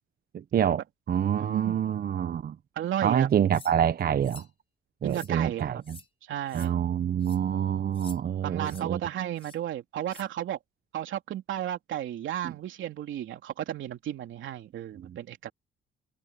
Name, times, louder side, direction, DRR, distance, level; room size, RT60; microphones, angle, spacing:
voice 1, 0.3-0.8 1.1-2.5 3.0-4.4 5.0-6.0 6.5-9.0 12.4-12.5 15.0-15.2, right 9 dB, 50° right, 0.8 m, -26 dB
voice 2, 1.4-1.8 2.7-3.3 5.0-5.8 6.3-6.7 8.4-10.6 10.9-15.5, right 11 dB, 75° right, 3.0 m, -33 dB
sound 1, 3.5-3.8 4.2-4.5 5.1-5.3 5.8-6.1 6.5-6.7 7.2-7.4 7.9-8.2 8.6-8.8 9.4-9.6 10.1-10.3, left 4 dB, 30° left, 5.8 m, -49 dB
cardioid pair, 90°, 20 cm